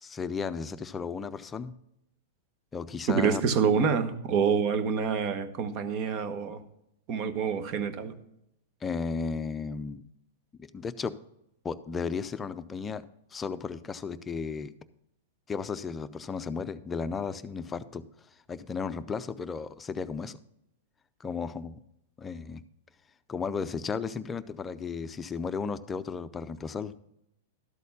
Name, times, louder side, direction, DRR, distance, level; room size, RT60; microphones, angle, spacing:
voice 1, 0.0-1.7 2.7-3.4 8.8-10.0 10.6-11.1 11.6-13.0 13.3-14.7 15.5-18.0 18.5-20.4 21.2-21.7 22.2-22.6 23.3-26.9, left 5 dB, 20° left, 12 dB, 0.5 m, -34 dB
voice 2, 3.1-6.6 7.1-8.1, right 6 dB, 45° right, 11 dB, 1.0 m, -27 dB
12.5 x 4.2 x 6.9 m, 0.80 s
hypercardioid pair, 120°, 0 cm